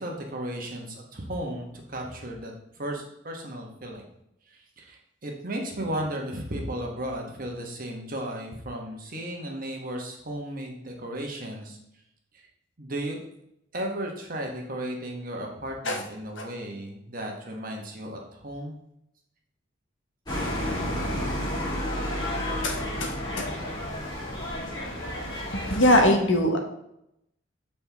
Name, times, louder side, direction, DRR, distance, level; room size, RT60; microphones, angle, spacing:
voice 1, 0.0-4.1 4.5-11.8 12.8-13.3 13.7-18.8, right 1 dB, 45° right, 1 dB, 1.2 m, -35 dB
sound 1, 20.3-26.1, left 1 dB, 20° left, 2.0 m, -31 dB
voice 2, 22.6-23.5 25.7-26.6, left 1 dB, 75° left, 3 dB, 1.1 m, -22 dB
7.8 x 4.3 x 3.5 m, 0.81 s
head